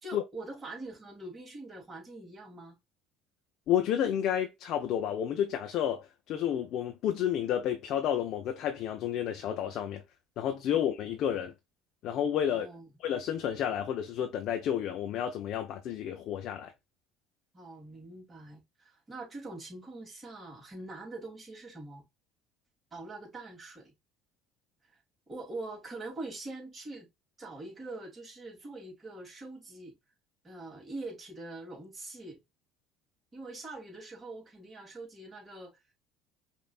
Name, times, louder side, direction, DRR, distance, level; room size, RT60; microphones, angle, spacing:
voice 1, 0.0-2.8 12.5-12.9 17.5-22.0 22.9-23.9 25.3-27.1 27.4-30.0 30.4-32.4 33.3-35.7, right 2 dB, 30° right, 2.8 m, -43 dB
voice 2, 3.7-10.0 10.4-11.5 12.0-12.7 13.0-16.7, left 10 dB, 60° left, 0.7 m, -31 dB
5.3 x 2.9 x 2.4 m
supercardioid pair, 75°, 0 cm